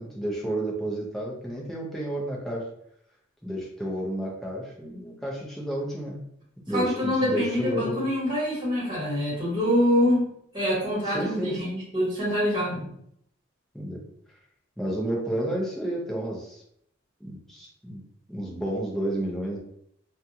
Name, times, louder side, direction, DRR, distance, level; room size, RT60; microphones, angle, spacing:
voice 1, 0.0-2.6 3.4-6.2 6.7-8.0 11.0-11.8 12.7-12.9 13.7-14.0 14.8-16.6 17.2-18.0 18.3-19.6, right 1 dB, ahead, -3 dB, 0.5 m, -31 dB
voice 2, 6.7-10.2 10.5-12.8, equal, 20° right, -7 dB, 1.4 m, -25 dB
2.6 x 2.3 x 2.7 m, 0.72 s
head